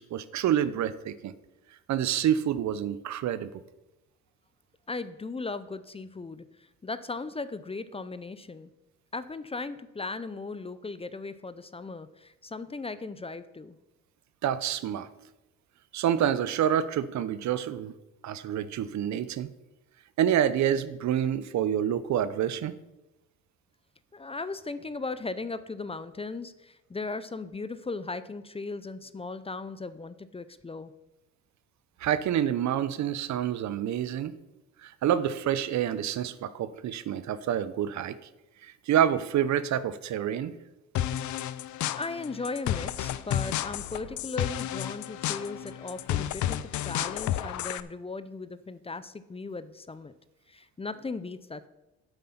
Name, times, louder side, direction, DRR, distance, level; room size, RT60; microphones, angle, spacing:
voice 1, 0.0-1.3 1.9-3.5 14.4-15.1 15.9-17.9 18.2-19.5 20.2-22.7 32.0-34.3 34.8-38.2 38.6-40.6, right 10 dB, 60° right, 15 dB, 0.7 m, -27 dB
voice 2, 4.9-6.4 6.8-8.7 9.1-13.8 24.1-30.9 41.9-50.1 50.5-51.7, left 3 dB, 20° left, 14 dB, 0.6 m, -37 dB
sound 1, 41.0-47.8, left 12 dB, 70° left, 0.6 m, -32 dB
8.4 x 8.0 x 5.8 m, 0.97 s
supercardioid pair, 70°, 31 cm